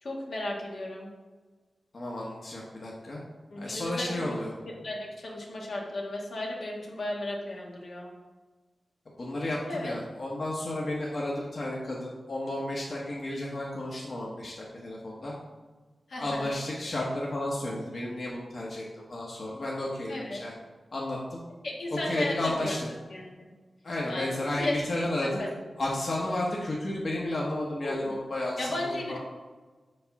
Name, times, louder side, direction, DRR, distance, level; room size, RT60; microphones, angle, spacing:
voice 1, 0.0-1.1 3.5-4.4 4.8-8.1 9.6-9.9 16.1-16.5 20.1-20.4 21.6-22.8 23.1-23.5 24.0-25.5 27.8-28.1 28.6-29.2, left 1 dB, 75° left, -2 dB, 1.4 m, -35 dB
voice 2, 1.9-3.2 3.6-4.5 9.2-15.3 16.2-20.5 20.9-21.4 22.0-22.9 23.8-25.4 25.8-29.2, left 1 dB, 55° left, -4 dB, 1.2 m, -32 dB
5.3 x 4.1 x 5.8 m, 1.3 s
cardioid pair, 65°, 0 cm